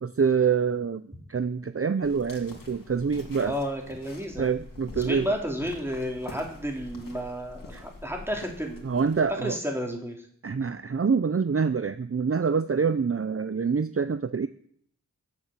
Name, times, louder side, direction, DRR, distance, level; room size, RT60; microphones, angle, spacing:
voice 1, 0.0-1.0 1.3-3.5 4.4-5.3 7.7-7.8 8.8-9.6 10.4-14.5, right 6 dB, 45° right, 12 dB, 0.7 m, -26 dB
sound 1, 2.0-9.4, left 2 dB, 75° left, 3.0 m, -45 dB
voice 2, 3.4-4.6 5.0-8.9 9.4-10.2, equal, 5° right, 1 dB, 4.0 m, -32 dB
21.5 x 7.5 x 7.6 m, 0.64 s
wide cardioid pair, 60°, 33 cm